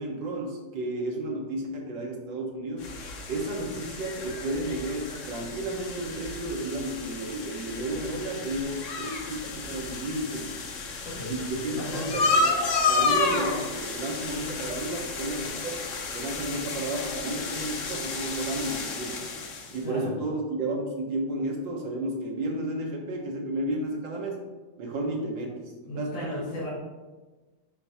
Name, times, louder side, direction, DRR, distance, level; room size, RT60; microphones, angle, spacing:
voice 1, 0.0-2.9 3.3-10.5 11.3-12.6 12.8-15.8 16.1-19.1 19.7-24.4 24.8-25.6 26.0-26.3, right 1 dB, 85° right, 0 dB, 1.8 m, -32 dB
sound 1, 2.8-19.8, left 4 dB, 55° left, 0.9 m, -31 dB
voice 2, 11.0-11.4 11.7-12.2 19.8-20.1 25.8-26.7, left 1 dB, 90° left, -10 dB, 2.3 m, -35 dB
7.8 x 2.7 x 5.6 m, 1.3 s
omnidirectional pair, 2.0 m